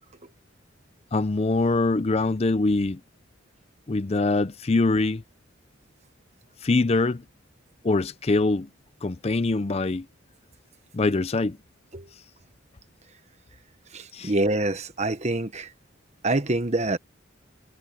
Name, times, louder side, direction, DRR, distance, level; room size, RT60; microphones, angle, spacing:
voice 1, 1.1-3.0 3.9-5.2 6.6-7.2 7.8-8.7 9.0-10.1 10.9-11.6 14.1-14.3, left 3 dB, 30° left, 0.5 m, -23 dB
voice 2, 13.9-15.7 16.2-17.0, right 2 dB, 35° right, 1.2 m, -26 dB
head